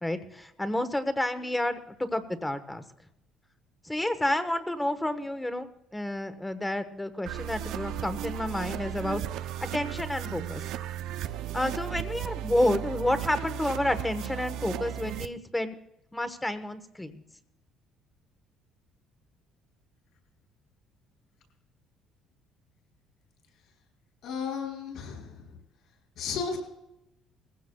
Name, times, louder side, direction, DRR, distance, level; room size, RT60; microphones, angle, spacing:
voice 1, 0.0-2.8 3.8-9.2 9.6-10.6 11.5-15.7 16.1-17.1, left 1 dB, 10° left, 10 dB, 1.1 m, -30 dB
sound 1, 7.3-15.3, right 11 dB, 75° right, 0.5 m, -35 dB
voice 2, 24.2-25.6 26.2-26.6, left 6 dB, 65° left, 2 dB, 5.5 m, -34 dB
21.0 x 16.0 x 2.3 m, 0.84 s
cardioid pair, 135°, 0 cm